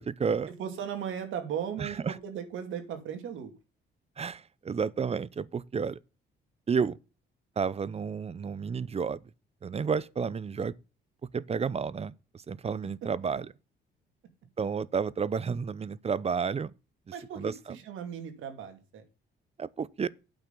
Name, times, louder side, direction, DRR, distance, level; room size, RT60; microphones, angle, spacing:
voice 1, 0.0-0.5 1.8-2.1 4.2-6.0 6.7-7.0 7.6-9.2 9.6-10.7 11.3-12.1 12.5-13.5 14.6-16.7 17.4-17.5 19.6-20.1, right 6 dB, 30° right, 0.6 m, -31 dB
voice 2, 0.6-3.5 17.1-19.0, right 8 dB, 80° right, 2.6 m, -37 dB
8.9 x 5.8 x 6.8 m
cardioid pair, 90°, 20 cm